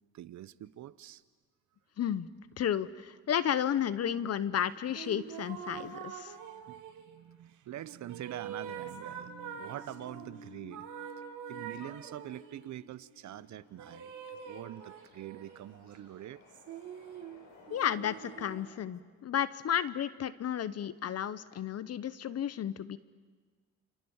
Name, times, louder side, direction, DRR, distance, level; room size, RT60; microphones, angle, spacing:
voice 1, 0.1-1.2 6.5-10.9 11.5-16.4, right 13 dB, 70° right, 17 dB, 0.9 m, -45 dB
voice 2, 2.0-2.3 2.6-6.3 17.7-23.0, left 9 dB, 55° left, 16 dB, 0.9 m, -32 dB
sound 1, 4.9-7.2 7.8-10.3 10.7-12.6 13.8-15.7 16.5-18.8, right 8 dB, 85° right, 3.2 m, -45 dB
sound 2, 9.2-15.6, left 2 dB, 30° left, 2.2 m, -55 dB
sound 3, 13.4-18.6, left 4 dB, 90° left, 7.6 m, -59 dB
29.0 x 28.0 x 7.3 m, 1.5 s
cardioid pair, 90°, 30 cm